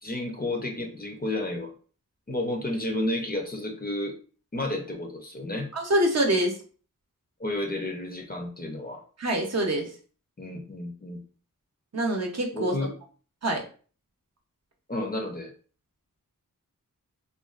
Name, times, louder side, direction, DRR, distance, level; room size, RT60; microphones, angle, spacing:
voice 1, 0.0-1.7 2.3-4.1 4.5-5.7 7.4-9.0 10.4-11.2 12.5-12.9 14.9-15.5, left 1 dB, 30° left, 2 dB, 0.5 m, -31 dB
voice 2, 5.7-6.6 9.2-9.9 11.9-12.9 13.4-13.6, right 1 dB, 50° right, 1 dB, 0.6 m, -25 dB
2.4 x 2.3 x 2.3 m, 0.40 s
wide cardioid pair, 65°, 34 cm